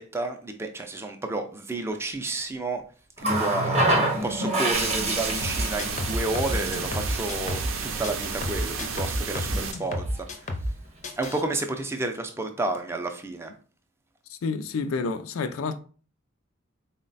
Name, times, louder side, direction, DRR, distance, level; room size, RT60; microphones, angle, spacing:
voice 1, 0.0-2.8 3.3-10.0 11.2-13.5, right 2 dB, 10° right, 0.4 m, -31 dB
Water tap faucet, 3.2-8.7 10.0-10.2, right 1 dB, 30° right, 0.7 m, -28 dB
sound 1, 4.7-9.7, right 5 dB, 75° right, 0.5 m, -33 dB
sound 2, 5.4-7.8 8.0-10.8 11.0-11.4, left 1 dB, 35° left, 0.5 m, -31 dB
voice 2, 14.4-15.8, left 4 dB, 85° left, 0.4 m, -29 dB
3.9 x 2.1 x 3.9 m
head